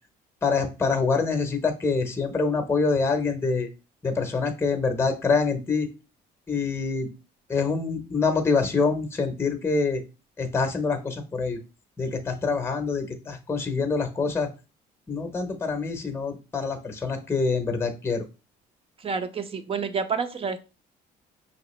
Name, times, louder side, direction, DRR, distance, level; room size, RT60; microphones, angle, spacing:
voice 1, 0.4-3.7 4.0-5.9 6.5-7.1 7.5-10.0 10.4-11.6 12.0-14.5 15.1-18.2, left 4 dB, 15° left, 6 dB, 0.8 m, -25 dB
voice 2, 19.0-20.6, right 5 dB, 35° right, 10 dB, 0.6 m, -29 dB
5.4 x 3.0 x 3.1 m, 0.31 s
cardioid pair, 110°, 17 cm